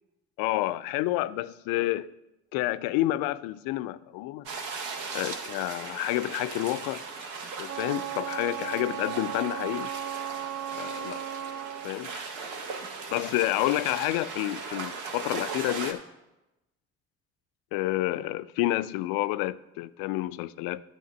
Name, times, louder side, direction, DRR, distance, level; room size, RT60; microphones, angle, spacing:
voice 1, 0.4-2.1 2.5-4.5 5.1-7.0 7.6-9.9 10.7-11.2 11.8-12.1 13.1-16.0 17.7-20.8, left 16 dB, 65° left, 0.5 m, -29 dB
sound 1, 4.5-15.9, right 4 dB, 70° right, 1.1 m, -38 dB
Wind instrument woodwind instrument, 7.6-12.0, right 11 dB, 45° right, 0.5 m, -36 dB
11.0 x 3.7 x 6.9 m
hypercardioid pair, 45°, 38 cm